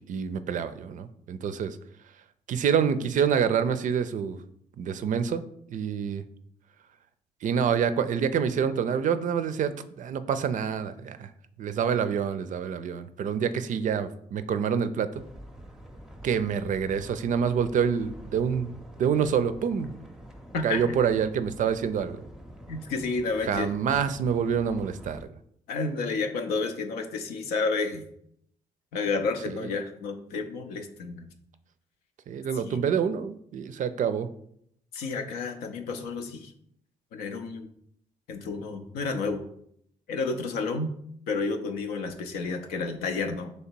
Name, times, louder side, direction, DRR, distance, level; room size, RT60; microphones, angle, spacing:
voice 1, 0.0-1.8 2.5-4.4 4.8-5.4 5.7-6.2 7.4-9.7 10.0-11.3 11.6-15.1 16.2-18.7 19.0-19.9 20.6-22.2 23.4-25.2 32.3-34.3, right 7 dB, 55° right, 12 dB, 0.4 m, -27 dB
sound 1, 15.1-25.2, equal, 5° right, 0.6 m, -46 dB
voice 2, 20.5-21.0 22.7-23.7 25.7-28.0 28.9-31.3 32.5-32.8 34.9-36.5 37.1-37.7 38.3-39.4 40.1-40.9 41.3-43.5, left 4 dB, 85° left, 6 dB, 0.5 m, -31 dB
3.1 x 2.8 x 4.4 m, 0.70 s
supercardioid pair, 55°, 15 cm